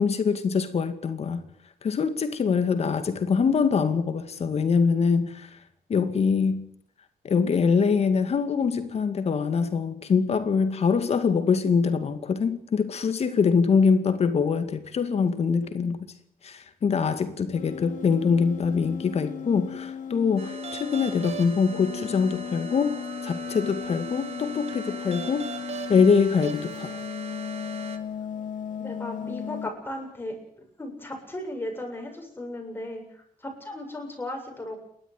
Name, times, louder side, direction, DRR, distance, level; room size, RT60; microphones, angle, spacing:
voice 1, 0.0-1.4 1.8-5.5 5.9-6.6 7.2-16.1 16.4-23.0 23.2-25.5 25.9-27.0, left 5 dB, 45° left, 2.3 m, -24 dB
sound 1, 17.5-26.1 26.3-29.7, left 8 dB, 65° left, 1.8 m, -37 dB
sound 2, 20.4-28.0, right 4 dB, 50° right, 3.0 m, -38 dB
voice 2, 28.8-30.4 30.8-34.8, left 1 dB, 15° left, 7.7 m, -36 dB
29.5 x 12.5 x 9.5 m
wide cardioid pair, 150°, 14 cm